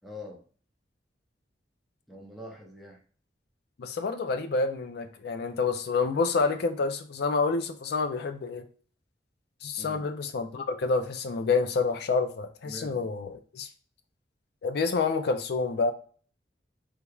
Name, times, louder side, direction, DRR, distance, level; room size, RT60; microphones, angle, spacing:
voice 1, 0.0-0.4 2.1-3.0 9.7-10.1 12.6-13.0, left 1 dB, ahead, -2 dB, 0.6 m, -44 dB
voice 2, 3.8-8.6 9.6-13.7 14.6-15.9, left 4 dB, 65° left, 8 dB, 0.4 m, -28 dB
3.4 x 3.0 x 2.3 m, 0.42 s
head